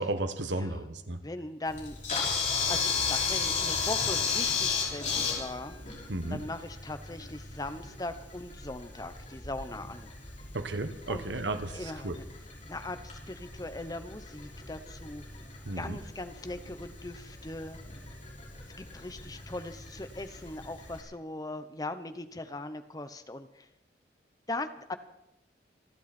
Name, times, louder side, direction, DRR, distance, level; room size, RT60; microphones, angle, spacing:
voice 1, 0.0-1.2 6.1-6.4 10.5-12.2 15.6-16.0, right 2 dB, 90° right, 9 dB, 1.4 m, -33 dB
voice 2, 1.2-2.0 2.7-5.8 6.3-10.1 11.1-11.2 11.7-12.2 12.7-15.2 15.8-17.8 18.8-23.7 24.5-25.0, left 2 dB, 20° left, 10 dB, 0.9 m, -39 dB
Camera, 1.7-21.0, left 5 dB, 40° left, 5.5 m, -35 dB
27.0 x 11.5 x 4.4 m, 0.84 s
head